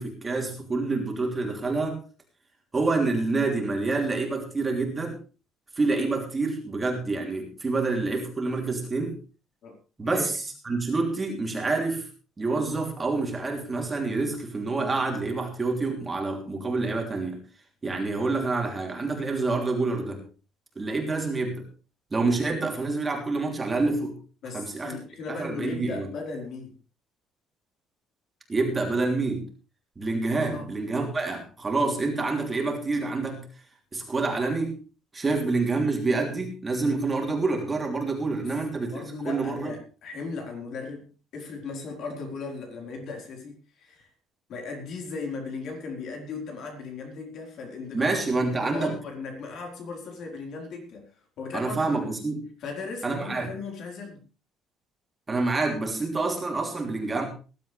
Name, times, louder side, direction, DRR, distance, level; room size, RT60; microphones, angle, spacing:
voice 1, 0.0-2.0 2.7-5.2 5.8-9.2 10.0-10.3 10.6-12.0 12.4-17.4 17.8-20.2 20.7-21.6 22.1-24.2 24.5-25.0 25.3-26.1 28.5-29.4 30.0-33.4 33.9-34.7 35.1-39.7 47.9-48.9 51.5-52.4 53.0-53.5 55.3-57.3, right 3 dB, 15° right, 2 dB, 3.1 m, -27 dB
voice 2, 24.4-26.8 30.4-30.7 38.4-38.5 38.9-44.1 44.5-52.1 52.6-54.2, left 4 dB, 55° left, 2 dB, 4.4 m, -37 dB
19.5 x 12.0 x 3.4 m, 0.34 s
cardioid pair, 165°, 0 cm